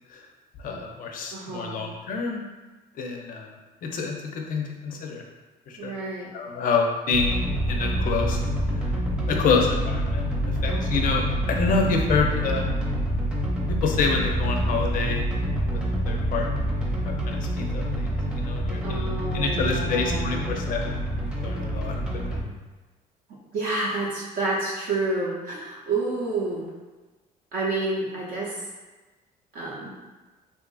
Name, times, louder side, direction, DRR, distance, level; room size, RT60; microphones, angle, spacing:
voice 1, 0.6-2.4 3.0-3.5 3.8-5.2 5.7-5.9 6.3-7.4 7.7-8.4 9.3-10.2 10.6-12.7 13.7-15.2 15.6-16.6 17.0-19.1 19.3-21.0 21.2-21.9, left 4 dB, 55° left, 2 dB, 0.4 m, -27 dB
voice 2, 1.3-1.7 5.8-6.3 10.7-11.1 18.8-20.5 23.5-26.7 27.5-28.6 29.5-29.9, right 2 dB, 70° right, -5 dB, 0.6 m, -29 dB
sound 1, 7.1-22.4, right 1 dB, 5° right, 0.5 m, -27 dB
2.7 x 2.5 x 2.3 m, 1.2 s
cardioid pair, 110°, 17 cm